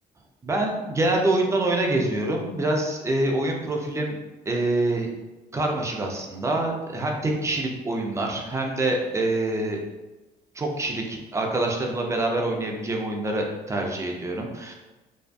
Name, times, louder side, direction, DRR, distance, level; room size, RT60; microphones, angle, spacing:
voice 1, 0.4-4.2 4.5-5.1 5.5-9.8 10.5-14.7, right 2 dB, 15° right, 1 dB, 0.4 m, -25 dB
2.5 x 2.3 x 2.2 m, 1.1 s
cardioid pair, 110°, 17 cm